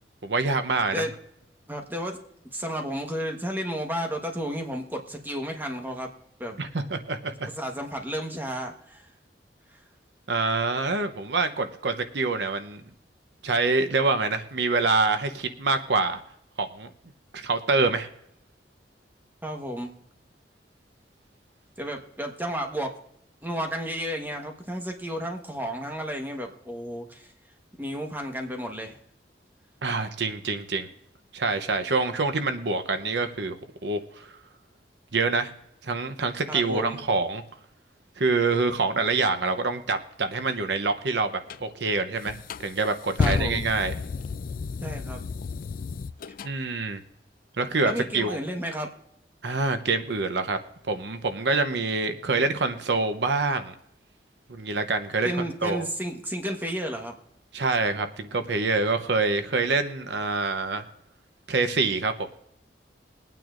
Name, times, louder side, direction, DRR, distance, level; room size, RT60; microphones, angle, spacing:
voice 1, 0.2-1.1 6.6-7.5 10.3-12.8 13.4-16.2 16.6-16.9 17.3-18.1 29.8-30.9 31.3-34.3 35.1-35.5 35.8-37.4 38.2-43.9 46.4-47.0 47.6-48.4 49.4-50.6 50.9-53.7 54.5-55.3 55.6-55.8 57.5-60.8 61.5-62.3, right 3 dB, 80° right, 9 dB, 0.8 m, -26 dB
voice 2, 1.7-2.2 2.5-6.1 6.4-6.6 7.5-9.1 19.4-19.9 21.8-23.0 23.4-27.3 27.8-29.0 36.5-37.0 43.2-43.7 44.8-45.2 47.8-48.9 55.2-57.2, equal, 10° right, 3 dB, 1.3 m, -32 dB
sound 1, 41.5-41.6 42.2-46.5, left 4 dB, 50° left, 0.3 m, -31 dB
22.0 x 9.1 x 2.5 m, 0.74 s
head